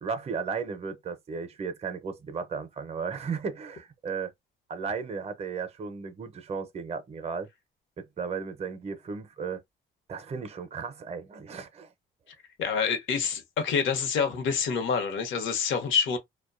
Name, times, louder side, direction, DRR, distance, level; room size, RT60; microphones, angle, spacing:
voice 1, 0.0-4.3 4.7-7.5 8.0-9.6 10.1-11.9, right 5 dB, 30° right, 0.5 m, -35 dB
voice 2, 12.6-16.2, left 6 dB, 80° left, 0.8 m, -27 dB
2.5 x 2.1 x 2.4 m
cardioid pair, 90°, 20 cm